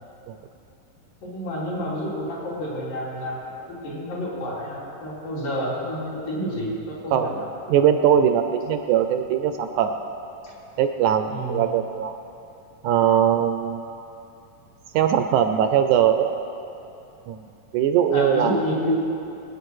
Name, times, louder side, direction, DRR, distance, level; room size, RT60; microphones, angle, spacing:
voice 1, 1.2-7.5 10.4-10.5 11.3-11.7 18.1-19.0, equal, 70° left, -6 dB, 5.4 m, -29 dB
voice 2, 7.7-9.9 10.8-12.2 12.8-13.8 14.9-16.3 17.3-17.4 17.7-18.5, right 9 dB, 75° right, 7 dB, 1.9 m, -20 dB
22.5 x 9.9 x 6.4 m, 2.8 s
omnidirectional pair, 4.0 m